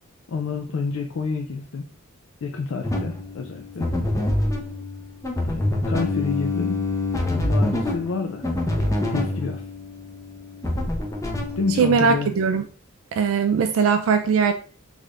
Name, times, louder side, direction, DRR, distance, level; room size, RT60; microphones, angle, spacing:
voice 1, 0.3-1.9 2.4-3.9 5.5-6.8 7.2-8.4 8.8-9.6 11.6-12.3, left 4 dB, 65° left, 2 dB, 0.4 m, -29 dB
sound 1, 2.8-12.4, left 1 dB, 15° left, 0.5 m, -26 dB
voice 2, 11.8-12.7 13.1-14.5, right 5 dB, 70° right, 6 dB, 0.3 m, -20 dB
3.6 x 3.3 x 2.4 m, 0.40 s
head